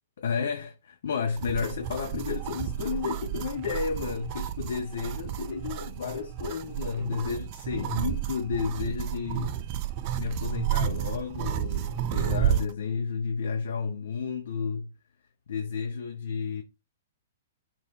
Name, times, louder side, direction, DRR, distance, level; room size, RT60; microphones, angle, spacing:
voice 1, 0.2-9.6 10.1-14.9 15.5-16.6, left 6 dB, 60° left, 0.7 m, -32 dB
sound 1, 1.4-12.7, right 11 dB, 40° right, 0.4 m, -31 dB
3.7 x 2.5 x 3.9 m
figure-of-eight pair, 110°, 0 cm